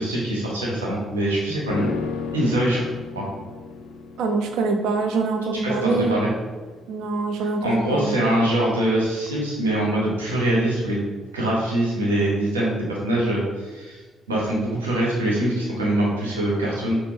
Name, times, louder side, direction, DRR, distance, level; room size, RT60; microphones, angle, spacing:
voice 1, 0.0-1.9 2.3-2.9 3.1-3.3 5.6-6.3 7.4-11.1 11.3-14.0 14.3-17.0, right 1 dB, 80° right, -5 dB, 1.0 m, -23 dB
sound 1, 1.7-11.1 11.4-11.5, left 5 dB, 60° left, 0.4 m, -36 dB
voice 2, 4.2-6.2 6.9-8.3, right 3 dB, 60° right, 6 dB, 0.5 m, -24 dB
5.7 x 2.5 x 3.4 m, 1.3 s
figure-of-eight pair, 45°, 0 cm